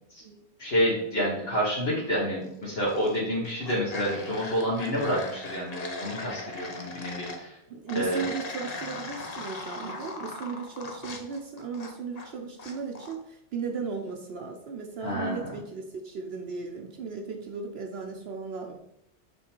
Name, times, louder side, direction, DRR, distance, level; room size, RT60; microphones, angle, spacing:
voice 1, 0.6-7.6 7.9-8.3 15.0-15.4, equal, 60° left, -6 dB, 1.7 m, -28 dB
sound 1, 2.6-3.2 3.4-7.4 7.9-12.3 12.6-13.2, left 3 dB, 40° left, 0.7 m, -39 dB
voice 2, 7.7-18.8, right 5 dB, 65° right, 2 dB, 0.9 m, -36 dB
6.3 x 3.7 x 4.4 m, 0.80 s
omnidirectional pair, 1.2 m